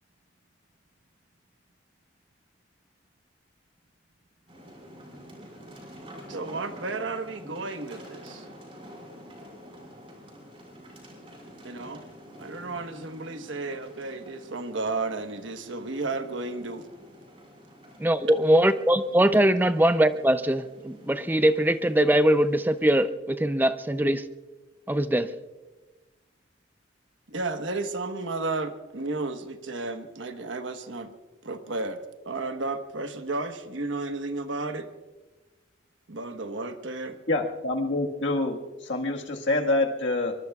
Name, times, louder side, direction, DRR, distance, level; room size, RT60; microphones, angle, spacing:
sound 1, 4.5-23.1, equal, 30° right, 4.8 m, -48 dB
voice 1, 6.3-8.4 11.6-12.0 12.4-16.9 18.2-18.3 27.3-31.1 31.4-32.0 32.2-34.9 36.1-37.2, right 3 dB, 80° right, 7 dB, 1.2 m, -33 dB
voice 2, 18.0-24.2 24.9-25.3, right 1 dB, 10° right, 11 dB, 0.5 m, -22 dB
voice 3, 37.3-40.3, left 2 dB, 70° left, 2 dB, 1.6 m, -26 dB
24.0 x 23.5 x 2.4 m, 1.2 s
head